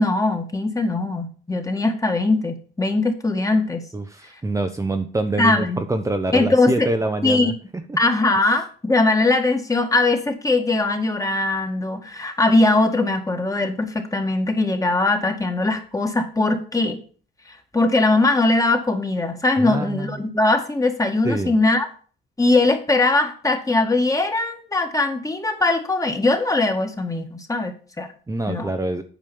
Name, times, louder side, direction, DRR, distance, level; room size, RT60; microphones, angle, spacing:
voice 1, 0.0-3.9 5.4-5.9 6.3-6.9 7.2-7.5 8.0-17.0 17.7-21.9 22.4-28.1 28.5-28.7, left 2 dB, 15° left, 5 dB, 1.8 m, -20 dB
voice 2, 3.9-7.5 19.6-20.1 21.2-21.5 28.3-29.0, right 2 dB, 15° right, 6 dB, 0.8 m, -25 dB
9.1 x 5.1 x 6.9 m, 0.42 s
cardioid pair, 90°, 20 cm